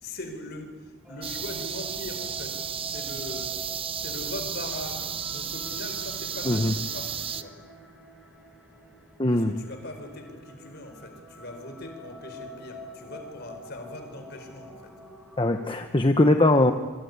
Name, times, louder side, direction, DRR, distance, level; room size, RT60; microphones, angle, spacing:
voice 1, 0.0-3.5 3.9-7.5 9.3-14.9, left 1 dB, 50° left, 6 dB, 4.8 m, -40 dB
sound 1, 1.0-15.6, right 1 dB, 5° right, 6.6 m, -47 dB
sound 2, 1.2-7.4, right 7 dB, 25° right, 0.9 m, -33 dB
voice 2, 9.2-9.5 15.4-16.7, left 2 dB, 25° left, 5 dB, 1.0 m, -21 dB
25.5 x 23.5 x 9.6 m, 1.4 s
head